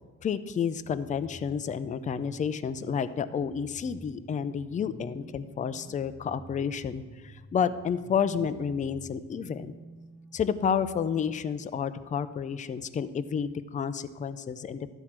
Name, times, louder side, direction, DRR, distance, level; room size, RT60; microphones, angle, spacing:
voice 1, 0.2-9.7 10.3-14.9, left 7 dB, 25° left, 13 dB, 0.3 m, -30 dB
sound 1, 0.9-11.0, right 1 dB, ahead, 0.7 m, -50 dB
12.5 x 4.5 x 7.3 m, 1.4 s
cardioid pair, 145°, 31 cm